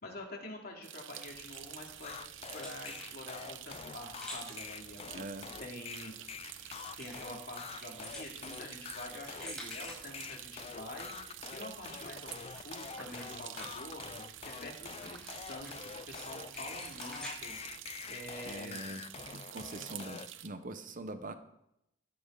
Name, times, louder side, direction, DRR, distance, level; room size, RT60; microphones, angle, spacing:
voice 1, 0.0-2.2 2.5-5.3 5.6-6.1 7.0-17.6 18.1-18.8, left 1 dB, 55° left, 1 dB, 2.7 m, -47 dB
sound 1, 0.8-20.5, right 12 dB, 80° right, 0.8 m, -48 dB
sound 2, 1.2-18.5, left 1 dB, 5° left, 6.2 m, -52 dB
sound 3, 2.0-20.3, left 6 dB, 30° left, 0.4 m, -46 dB
voice 2, 5.1-5.5 18.4-19.0 19.3-21.3, right 2 dB, 45° right, 9 dB, 0.9 m, -43 dB
13.5 x 12.5 x 4.0 m, 0.81 s
head